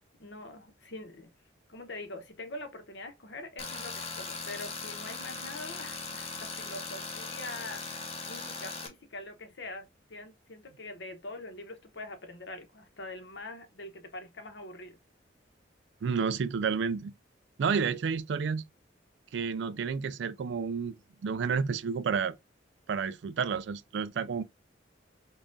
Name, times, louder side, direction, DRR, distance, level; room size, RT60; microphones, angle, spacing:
voice 1, 0.2-1.3 1.7-15.0, left 2 dB, 65° left, 0.9 m, -44 dB
Tools, 3.6-8.9, left 4 dB, 30° left, 0.6 m, -39 dB
voice 2, 16.0-17.1 17.6-18.6 19.3-20.9 21.2-22.4 22.9-24.4, right 6 dB, 65° right, 0.3 m, -30 dB
5.3 x 2.4 x 2.5 m
head